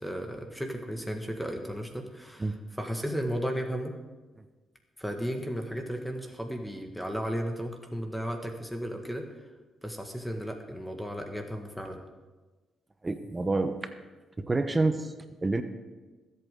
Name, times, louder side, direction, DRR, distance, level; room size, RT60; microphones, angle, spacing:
voice 1, 0.0-4.0 5.0-9.3 9.8-12.0, equal, 5° left, 3 dB, 1.6 m, -34 dB
voice 2, 13.0-13.8 14.4-15.1 15.4-15.6, right 3 dB, 25° right, 8 dB, 1.0 m, -27 dB
21.5 x 8.3 x 3.8 m, 1.3 s
cardioid pair, 70°, 0 cm